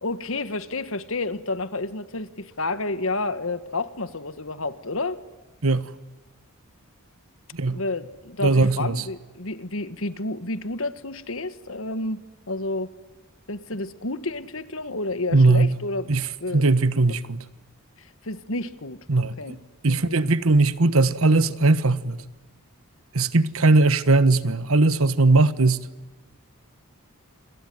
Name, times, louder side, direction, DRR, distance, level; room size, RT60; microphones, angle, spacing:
voice 1, 0.0-5.2 7.7-12.9 13.5-16.7 18.0-19.6 19.8-20.2, left 2 dB, 65° left, 1.7 m, -30 dB
voice 2, 8.4-9.0 15.3-15.7 16.1-16.3 16.5-17.4 19.1-19.6 19.8-22.2 23.1-25.9, right 3 dB, 70° right, 1.3 m, -19 dB
28.5 x 22.0 x 9.4 m
head